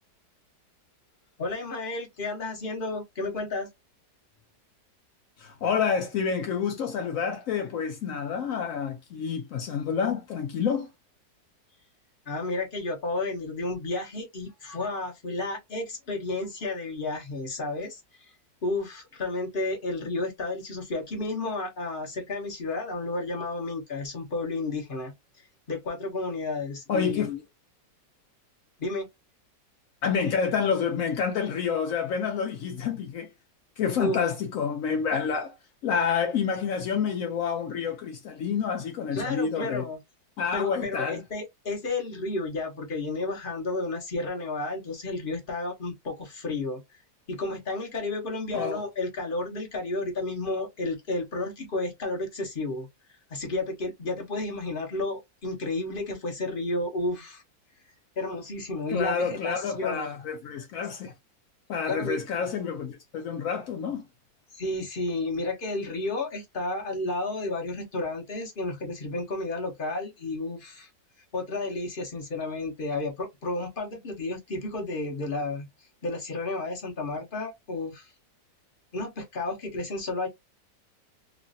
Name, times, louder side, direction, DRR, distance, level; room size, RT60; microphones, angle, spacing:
voice 1, 1.4-3.7 12.3-18.3 18.6-25.1 25.7-27.4 28.8-29.1 34.0-34.2 39.1-40.0 40.5-47.0 47.3-52.9 53.3-57.4 58.2-60.1 61.9-62.2 64.5-70.9 71.3-75.7 76.0-78.1 78.9-80.3, left 2 dB, 45° left, 0.7 m, -32 dB
voice 2, 5.4-10.9 26.9-27.3 30.0-33.3 33.8-35.6 35.8-39.9 40.4-41.2 48.5-48.8 58.9-61.1 61.7-64.0, left 6 dB, 85° left, 0.7 m, -28 dB
3.1 x 2.4 x 2.5 m
omnidirectional pair, 2.0 m